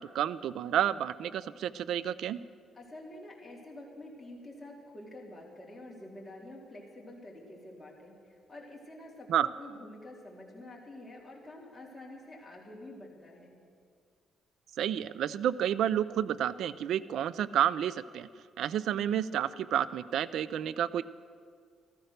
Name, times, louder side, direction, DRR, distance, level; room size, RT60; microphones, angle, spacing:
voice 1, 0.0-2.4 9.3-9.5 14.8-18.3 18.6-21.0, right 10 dB, 75° right, 18 dB, 0.4 m, -30 dB
voice 2, 2.7-13.6, left 1 dB, 15° left, -3 dB, 3.8 m, -48 dB
14.0 x 14.0 x 6.5 m, 2.1 s
cardioid pair, 90°, 0 cm